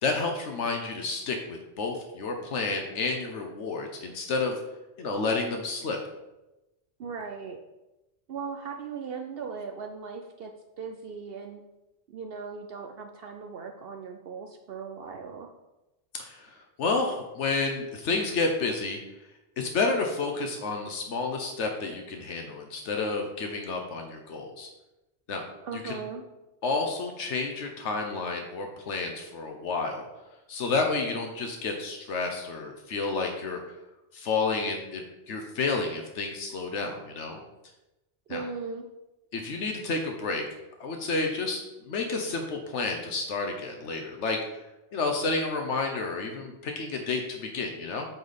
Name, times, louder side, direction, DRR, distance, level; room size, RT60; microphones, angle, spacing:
voice 1, 0.0-4.6 5.0-6.0 16.2-19.0 19.6-24.7 25.3-25.4 25.7-26.0 26.6-30.0 30.5-33.6 34.1-37.4 38.3-38.4 39.3-40.4 40.8-44.6 44.9-48.1, left 3 dB, 85° left, 3 dB, 1.2 m, -30 dB
voice 2, 7.0-7.6 8.3-10.5 10.8-11.6 12.1-15.5 25.6-26.2 38.3-38.9, right 5 dB, 60° right, 4 dB, 0.8 m, -38 dB
8.6 x 4.1 x 5.1 m, 1.0 s
omnidirectional pair, 1.2 m